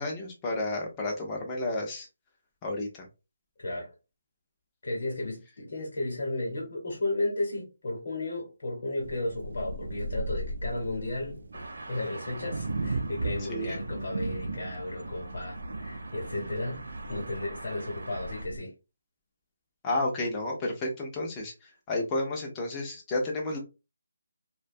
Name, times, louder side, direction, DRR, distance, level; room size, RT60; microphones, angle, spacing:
voice 1, 0.0-2.1 2.6-2.9 13.5-13.8 19.8-21.5 21.9-23.6, left 2 dB, 10° left, 0.4 m, -31 dB
voice 2, 3.6-3.9 4.8-11.4 11.9-18.7, left 2 dB, 40° left, 0.9 m, -34 dB
sound 1, 9.0-18.6, right 2 dB, 60° right, 0.4 m, -37 dB
sound 2, 11.5-18.5, right 2 dB, 75° right, 0.8 m, -44 dB
2.6 x 2.1 x 2.5 m
hypercardioid pair, 180°, 0 cm